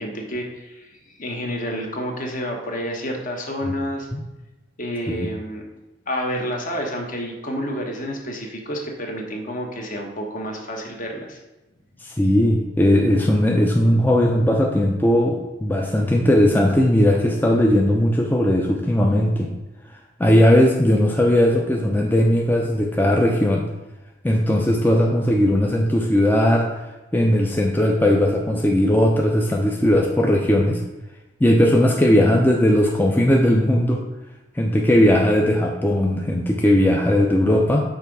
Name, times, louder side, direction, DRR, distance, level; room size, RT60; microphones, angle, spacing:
voice 1, 0.0-4.1 4.8-5.6 6.1-11.4, equal, 45° left, 1 dB, 1.2 m, -29 dB
voice 2, 12.0-19.5 20.2-23.7 24.2-26.6 27.1-30.8 31.4-34.0 34.6-37.8, left 1 dB, 10° left, 0 dB, 0.5 m, -18 dB
5.8 x 3.9 x 6.0 m, 1.1 s
head